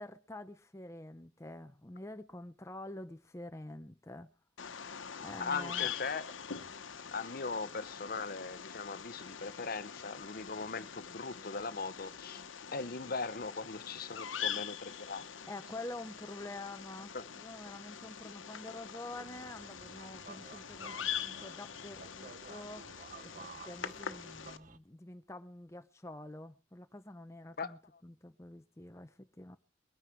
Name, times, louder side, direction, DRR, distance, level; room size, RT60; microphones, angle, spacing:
voice 1, 0.0-4.3 5.2-5.9 15.5-22.8 23.2-29.6, left 2 dB, 15° left, 0.7 m, -47 dB
Bird vocalization bird call bird song, 4.6-24.6, left 8 dB, 90° left, 1.1 m, -44 dB
voice 2, 5.4-6.4 7.1-12.4 12.7-15.2 17.1-17.2 18.2-18.3 27.6-27.7, left 4 dB, 50° left, 0.8 m, -39 dB
sound 1, 19.1-24.8, right 5 dB, 40° right, 0.6 m, -53 dB
22.0 x 9.8 x 4.5 m
head